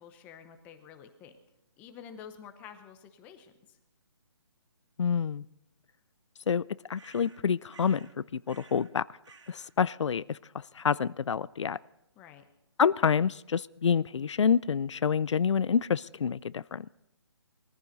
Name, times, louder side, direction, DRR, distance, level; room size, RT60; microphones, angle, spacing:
voice 1, 0.0-1.3 1.8-3.8 12.2-12.4, left 8 dB, 10° left, 0.8 m, -49 dB
voice 2, 5.0-5.4 6.5-9.1 9.5-11.8 12.8-16.9, left 7 dB, 85° left, 0.5 m, -28 dB
sound 1, 6.9-8.2 8.5-8.9 9.2-9.7, right 4 dB, 85° right, 2.0 m, -55 dB
21.0 x 14.5 x 4.0 m
hypercardioid pair, 165°, 15 cm